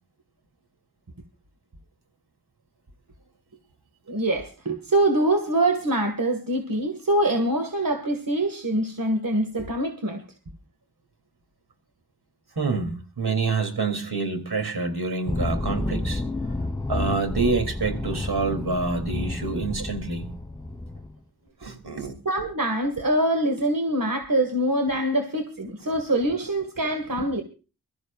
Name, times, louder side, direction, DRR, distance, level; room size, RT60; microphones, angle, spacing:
voice 1, 4.1-10.2 22.3-27.4, right 1 dB, 60° right, 5 dB, 2.3 m, -24 dB
voice 2, 12.5-16.2 16.9-20.3 21.6-22.2, right 4 dB, 90° right, 6 dB, 3.4 m, -27 dB
sound 1, 15.3-21.2, left 2 dB, 10° left, 3.4 m, -30 dB
23.5 x 14.0 x 2.6 m, 0.33 s
wide cardioid pair, 45°, 37 cm